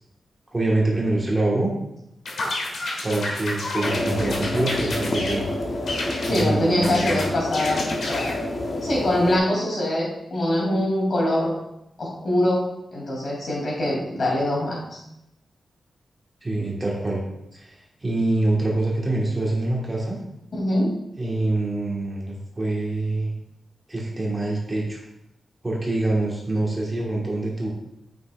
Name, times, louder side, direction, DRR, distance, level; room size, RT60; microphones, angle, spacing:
voice 1, 0.5-1.7 3.0-5.4 6.3-7.2 16.4-17.2 17.5-20.2 21.2-23.3 23.9-25.0 25.6-27.7, right 2 dB, 20° right, -3 dB, 1.5 m, -25 dB
sound 1, 2.3-5.4 5.9-6.5 6.8-8.4, left 2 dB, 80° left, 1.5 m, -30 dB
sound 2, 3.8-9.4, left 1 dB, 35° left, 0.8 m, -28 dB
voice 2, 6.2-8.4 8.8-11.5 12.0-12.7 12.9-15.0 20.6-20.9, left 1 dB, 55° left, -3 dB, 2.8 m, -23 dB
9.2 x 5.9 x 2.4 m, 0.83 s
wide cardioid pair, 140°, 0 cm